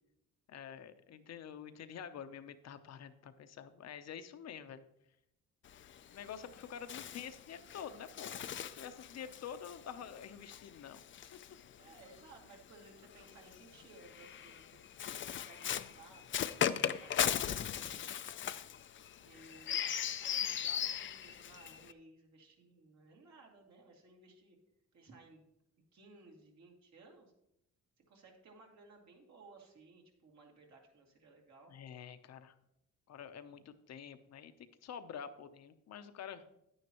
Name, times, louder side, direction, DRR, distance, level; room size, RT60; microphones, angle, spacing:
voice 1, 0.5-4.8 6.0-11.0 11.3-11.6 31.7-32.5 33.1-36.4, left 8 dB, 60° left, 10 dB, 0.8 m, -48 dB
Bird, 5.6-12.2 13.1-21.9, left 9 dB, 40° left, 0.5 m, -39 dB
voice 2, 11.8-16.3 17.0-18.2 19.2-19.9 20.2-24.6 24.9-25.5 25.9-27.3 28.1-31.8, right 3 dB, 65° right, 0 dB, 2.5 m, -59 dB
9.9 x 9.5 x 3.0 m, 0.82 s
cardioid pair, 90°, 30 cm